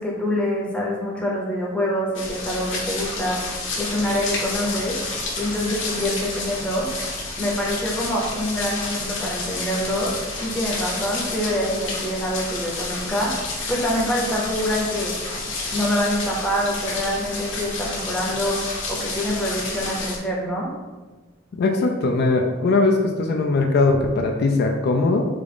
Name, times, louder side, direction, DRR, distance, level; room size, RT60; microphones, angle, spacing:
voice 1, 0.0-15.1 15.7-20.7, equal, 5° left, -4 dB, 0.6 m, -26 dB
sound 1, 2.2-20.2, left 3 dB, 75° left, 0.7 m, -30 dB
voice 2, 21.6-25.2, left 3 dB, 55° left, 3 dB, 0.3 m, -20 dB
3.7 x 2.4 x 3.4 m, 1.3 s
head